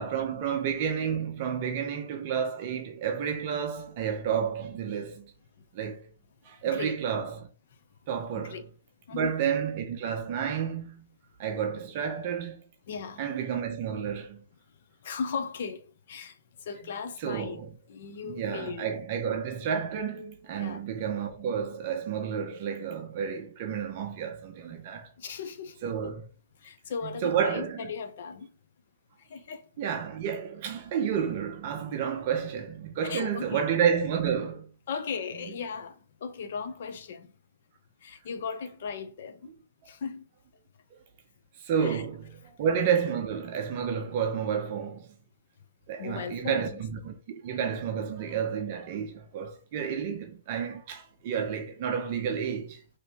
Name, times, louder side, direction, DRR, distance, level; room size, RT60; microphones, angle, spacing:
voice 1, 0.0-5.3 5.7-6.0 6.4-7.5 8.1-8.6 9.1-11.0 11.4-12.6 13.2-14.4 17.2-17.7 18.3-25.1 25.8-26.2 27.2-27.8 29.8-34.7 41.6-45.1 45.9-52.8, right 7 dB, 35° right, 0.6 m, -30 dB
voice 2, 6.6-7.0 8.3-8.6 9.1-9.3 12.9-13.3 15.0-17.6 17.9-18.9 20.6-20.8 25.2-26.1 26.6-28.5 29.2-29.7 33.0-34.0 34.9-37.3 38.0-39.5 39.9-40.2 41.8-42.0 46.0-46.8, left 6 dB, 50° left, 0.7 m, -37 dB
5.2 x 3.0 x 2.9 m
hypercardioid pair, 165°, 0 cm